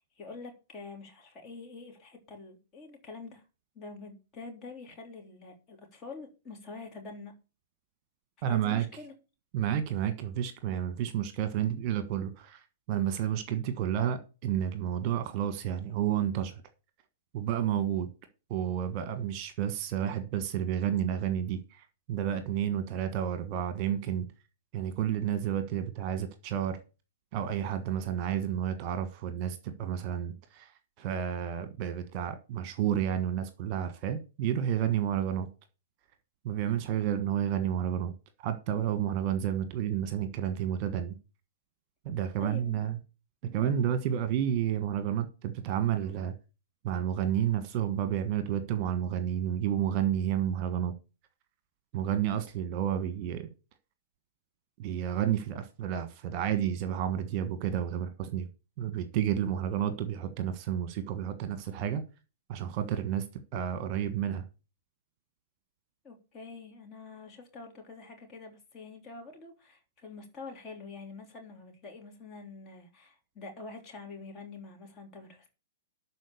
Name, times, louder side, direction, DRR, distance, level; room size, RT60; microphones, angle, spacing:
voice 1, 0.0-3.4 3.8-7.3 8.5-9.2 42.4-42.8 43.6-43.8 66.0-75.5, left 3 dB, 25° left, 3.5 m, -46 dB
voice 2, 8.4-8.8 9.5-16.6 17.3-18.1 18.5-24.3 24.7-26.8 27.3-30.7 31.0-35.5 36.4-38.1 38.4-41.1 42.0-43.0 43.4-46.3 46.8-50.9 51.9-53.5 54.8-58.5 58.8-62.0 62.5-63.2 63.5-64.4, right 10 dB, 35° right, 1.4 m, -31 dB
12.5 x 4.7 x 6.9 m
figure-of-eight pair, 110°, 0 cm